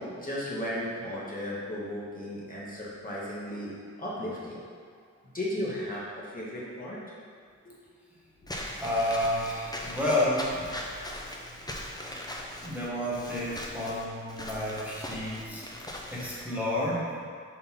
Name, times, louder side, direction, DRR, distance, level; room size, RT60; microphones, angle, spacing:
voice 1, 0.0-3.7 4.0-4.6 5.3-7.0 7.6-7.8, left 1 dB, 30° left, -7 dB, 1.3 m, -35 dB
Walk footsteps / Squeak, 8.5-16.4, left 1 dB, 15° left, 0.6 m, -40 dB
voice 2, 8.8-10.6 12.6-15.7 16.1-17.2, left 1 dB, 5° right, -8 dB, 1.3 m, -30 dB
4.4 x 3.8 x 5.5 m, 2.1 s
wide cardioid pair, 95°, 30 cm